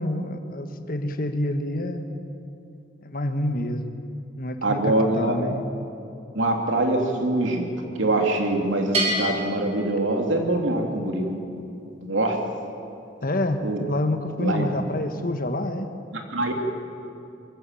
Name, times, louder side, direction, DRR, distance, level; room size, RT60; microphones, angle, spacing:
voice 1, 0.0-2.0 3.0-3.9 4.4-5.6 13.2-15.9, left 1 dB, 45° left, 7 dB, 1.4 m, -27 dB
voice 2, 4.6-5.4 6.3-7.7 8.0-11.4 12.0-12.4 13.6-13.8 14.4-14.6 16.3-16.5, right 2 dB, 80° right, 2 dB, 2.8 m, -23 dB
Bell, 8.9-10.7, right 1 dB, 35° right, 4.6 m, -29 dB
23.0 x 14.5 x 9.1 m, 2.7 s
head